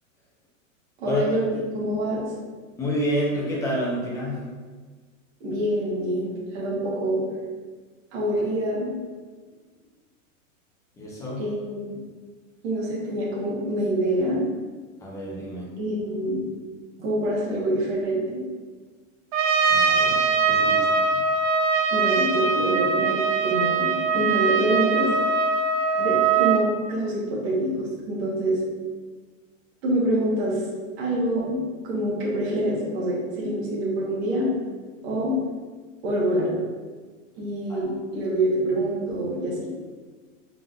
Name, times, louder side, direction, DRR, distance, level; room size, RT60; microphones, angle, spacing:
voice 1, 1.0-1.5 1.7-2.3 5.4-7.2 8.1-8.9 11.4-12.0 12.6-14.4 15.8-16.4 17.0-18.2 21.9-23.2 23.4-25.1 26.0-28.6 29.8-30.6 31.0-31.6 31.8-34.5 35.0-35.3 36.0-36.5 37.4-39.7, right 1 dB, 50° right, -6 dB, 1.5 m, -26 dB
voice 2, 2.8-4.5 11.0-11.5 15.0-15.7 19.7-21.2 37.7-37.8, equal, 10° left, -6 dB, 0.7 m, -29 dB
Trumpet, 19.3-26.7, right 5 dB, 75° right, 0.6 m, -22 dB
3.8 x 3.8 x 2.5 m, 1.4 s
supercardioid pair, 150°, 40 cm